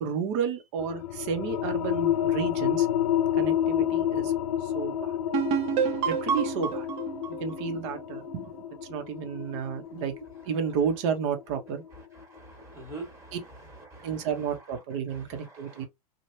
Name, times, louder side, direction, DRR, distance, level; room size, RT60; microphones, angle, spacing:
voice 1, 0.0-2.9 3.4-4.3 4.6-5.1 6.1-6.9 7.4-8.5 8.9-10.1 10.4-11.8 13.3-13.4 14.0-15.8, right 7 dB, 55° right, 1.0 m, -31 dB
sound 1, 0.8-12.0, left 11 dB, 85° left, 0.5 m, -29 dB
sound 2, 5.3-8.9, right 8 dB, 35° right, 0.6 m, -30 dB
voice 2, 12.3-13.4 13.9-14.3 15.1-15.9, right 2 dB, 15° right, 1.7 m, -44 dB
3.2 x 2.4 x 2.8 m
hypercardioid pair, 120°, 19 cm